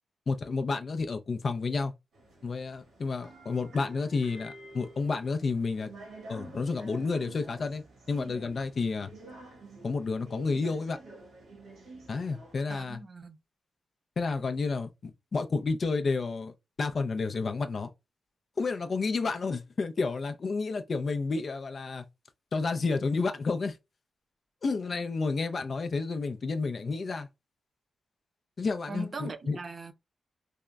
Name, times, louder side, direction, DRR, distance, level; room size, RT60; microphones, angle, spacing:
voice 1, 0.3-1.9 2.4-5.9 6.3-9.1 9.8-11.0 12.1-13.0 14.2-17.9 18.6-22.0 22.5-23.8 24.6-27.3 28.6-29.6, left 4 dB, 55° left, 0.4 m, -30 dB
sound 1, 2.1-12.5, right 2 dB, 90° right, 1.0 m, -49 dB
voice 2, 12.7-13.4 28.9-29.9, right 3 dB, 50° right, 0.6 m, -40 dB
3.6 x 2.0 x 2.2 m
cardioid pair, 60°, 0 cm